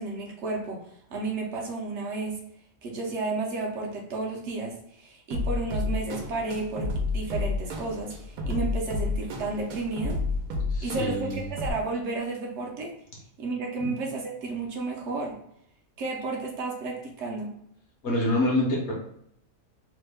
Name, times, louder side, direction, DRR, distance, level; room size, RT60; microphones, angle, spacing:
voice 1, 0.0-2.4 2.8-10.2 10.8-12.9 13.4-15.4 16.0-17.5, right 3 dB, 60° right, 0 dB, 0.8 m, -32 dB
sound 1, 5.3-11.7, left 3 dB, 80° right, 1.1 m, -31 dB
voice 2, 10.7-11.5 13.8-14.0 18.0-18.9, left 1 dB, 55° left, -3 dB, 0.9 m, -26 dB
3.0 x 2.1 x 3.3 m, 0.72 s
omnidirectional pair, 1.6 m